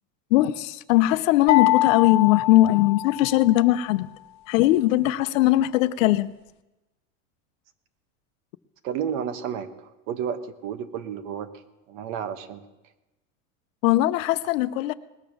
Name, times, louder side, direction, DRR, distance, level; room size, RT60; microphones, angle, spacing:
voice 1, 0.3-4.1 4.5-6.3 13.8-14.9, left 15 dB, 75° left, 0.8 m, -20 dB
sound 1, 1.5-3.6, left 17 dB, 45° left, 1.0 m, -24 dB
voice 2, 8.8-11.5 11.9-12.6, right 8 dB, 60° right, 1.3 m, -31 dB
20.0 x 7.0 x 6.2 m
supercardioid pair, 140°, 40 cm